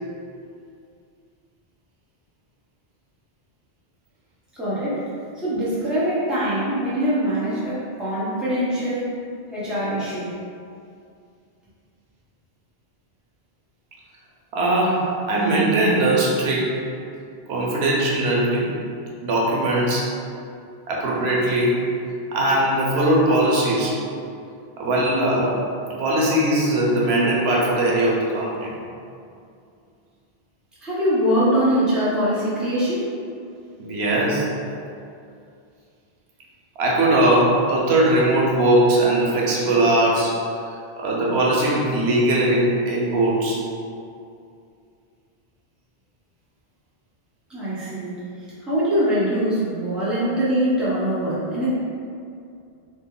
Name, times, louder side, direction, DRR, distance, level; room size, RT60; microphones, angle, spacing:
voice 1, 4.5-5.1 5.4-9.2 9.5-10.3 30.8-33.1 47.5-48.2 48.6-51.8, equal, ahead, -11 dB, 0.8 m, -23 dB
voice 2, 14.5-16.8 17.5-18.7 19.2-20.1 20.9-21.9 22.3-24.0 24.8-25.6 26.0-28.8 33.8-34.5 36.8-40.4 41.0-43.6, right 1 dB, 90° right, -4 dB, 0.9 m, -20 dB
3.1 x 2.1 x 3.6 m, 2.4 s
omnidirectional pair, 1.1 m